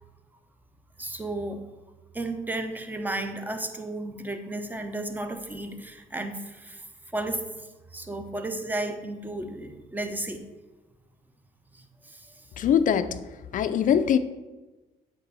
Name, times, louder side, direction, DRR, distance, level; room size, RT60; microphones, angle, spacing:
voice 1, 1.0-1.6 2.1-6.8 7.1-7.4 7.9-10.4 11.7-12.3, right 2 dB, 10° right, 0.8 m, -33 dB
voice 2, 12.6-13.2 13.5-14.2, left 8 dB, 60° left, 0.5 m, -22 dB
8.2 x 3.5 x 5.5 m
cardioid pair, 80°, 15 cm